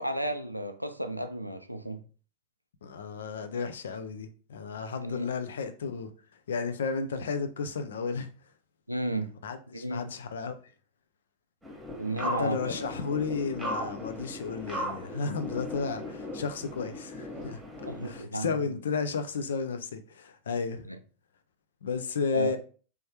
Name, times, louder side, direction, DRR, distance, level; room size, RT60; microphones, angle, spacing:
voice 1, 0.0-2.0 5.0-5.3 8.9-9.3 9.7-10.0 12.0-12.6 17.9-18.8 20.9-21.0 22.3-22.6, right 1 dB, 90° right, 0.3 m, -33 dB
voice 2, 2.8-6.1 6.5-8.3 9.4-10.5 12.2-17.6 18.0-20.9 21.8-22.6, left 5 dB, 65° left, 0.4 m, -33 dB
sound 1, 11.6-18.2, equal, 5° right, 1.1 m, -37 dB
3.4 x 3.1 x 2.8 m
figure-of-eight pair, 90°, 0 cm